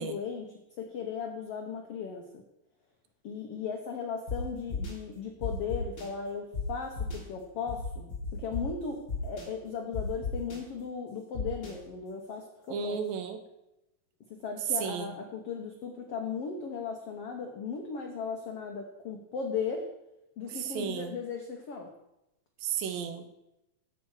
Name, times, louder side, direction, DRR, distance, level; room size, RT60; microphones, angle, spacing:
voice 1, 0.0-2.4 3.2-13.0 14.3-19.9 20.4-21.9, left 6 dB, 85° left, 3 dB, 1.3 m, -37 dB
sound 1, 4.3-4.4 4.7-4.9 5.4-6.0 6.5-6.6 7.0-7.2 7.7-8.6 9.1-9.4 9.9-10.6 11.3-11.7, left 6 dB, 35° left, 2.2 m, -34 dB
voice 2, 12.7-13.4 14.8-15.1 20.6-21.2 22.6-23.2, right 6 dB, 80° right, 8 dB, 2.6 m, -33 dB
11.0 x 8.0 x 4.7 m, 0.90 s
omnidirectional pair, 4.0 m